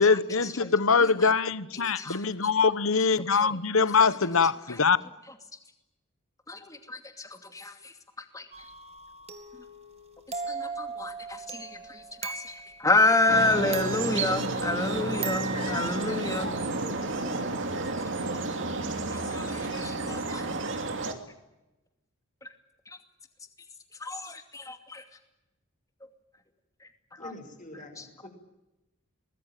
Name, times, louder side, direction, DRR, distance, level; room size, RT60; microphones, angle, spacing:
voice 1, 0.0-5.0, left 5 dB, 70° left, 1.1 m, -23 dB
voice 2, 1.7-2.3 3.3-3.5 4.7-4.8 6.5-8.6 10.5-16.5 19.0-20.6 22.4-22.5 22.9-23.0 24.0-25.0 26.8-27.3 28.0-28.3, left 2 dB, 15° left, 2.5 m, -30 dB
sound 1, 8.5-12.9 13.7-14.8 15.2-16.2, right 5 dB, 30° right, 2.1 m, -39 dB
sound 2, 13.3-21.1, right 2 dB, 60° right, 2.8 m, -31 dB
voice 3, 14.2-17.5 27.2-28.3, left 2 dB, 35° left, 6.4 m, -43 dB
24.0 x 20.5 x 9.3 m
head